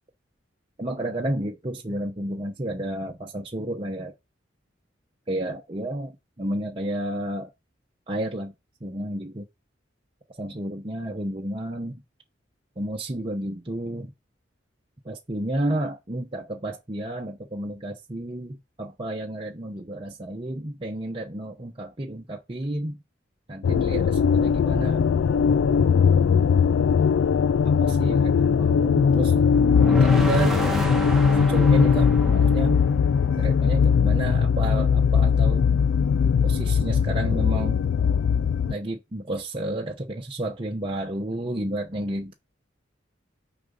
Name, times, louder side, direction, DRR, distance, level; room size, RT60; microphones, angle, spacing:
voice 1, 0.8-4.1 5.3-6.1 6.4-7.5 8.1-8.5 8.8-9.4 10.4-12.0 12.8-14.1 15.1-22.9 23.5-25.1 27.7-29.5 29.9-30.6 31.4-32.8 33.4-35.6 36.4-37.8 38.7-42.3, right 1 dB, 30° right, 0.8 m, -31 dB
sound 1, 23.6-38.7, left 6 dB, 90° left, 0.3 m, -20 dB
sound 2, 29.5-33.6, right 1 dB, ahead, 1.3 m, -30 dB
6.6 x 5.0 x 5.4 m
head